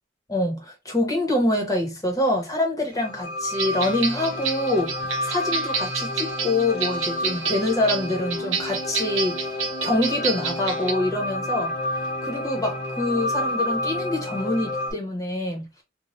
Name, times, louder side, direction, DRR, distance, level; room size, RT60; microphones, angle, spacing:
voice 1, 0.3-9.5 9.8-15.7, left 1 dB, 20° left, 1.0 m, -25 dB
sound 1, 2.9-14.9, left 1 dB, 55° left, 1.3 m, -30 dB
sound 2, 3.5-10.9, right 6 dB, 75° right, 0.8 m, -29 dB
3.2 x 2.4 x 2.5 m
head